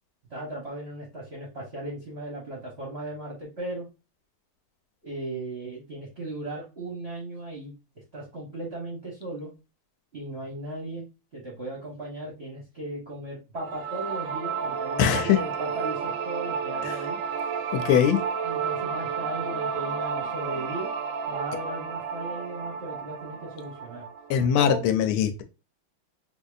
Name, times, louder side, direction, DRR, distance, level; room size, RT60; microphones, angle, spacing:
voice 1, 0.3-3.9 5.0-7.7 8.1-9.5 10.1-17.2 18.4-20.9 21.3-24.0 24.6-24.8, right 1 dB, 45° right, -4 dB, 0.8 m, -37 dB
sound 1, 13.6-24.6, right 6 dB, 75° right, 1.0 m, -32 dB
voice 2, 15.0-15.4 16.8-16.9 17.7-18.2 24.3-25.4, left 9 dB, 85° left, 8 dB, 1.4 m, -22 dB
4.0 x 2.7 x 2.4 m, 0.29 s
omnidirectional pair, 2.3 m